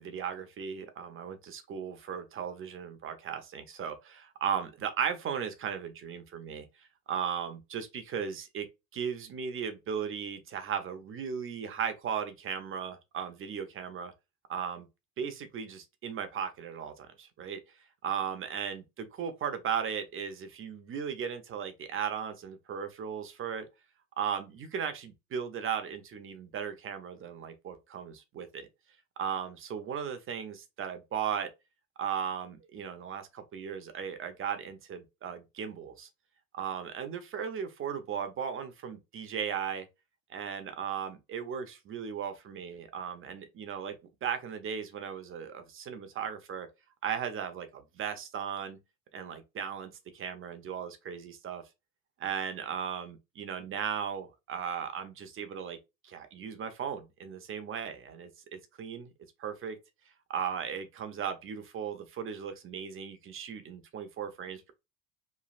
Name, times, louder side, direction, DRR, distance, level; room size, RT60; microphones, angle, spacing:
voice 1, 0.0-6.7 7.1-8.7 8.9-14.1 14.5-14.9 15.2-17.6 18.0-23.7 24.2-28.7 29.2-31.5 32.0-36.1 36.5-39.9 40.3-43.9 44.2-46.7 47.0-48.8 49.1-51.6 52.2-55.8 56.0-59.1 59.4-59.8 60.3-64.7, right 7 dB, 30° right, 0.5 m, -36 dB
3.1 x 2.3 x 2.4 m
supercardioid pair, 105°, 42 cm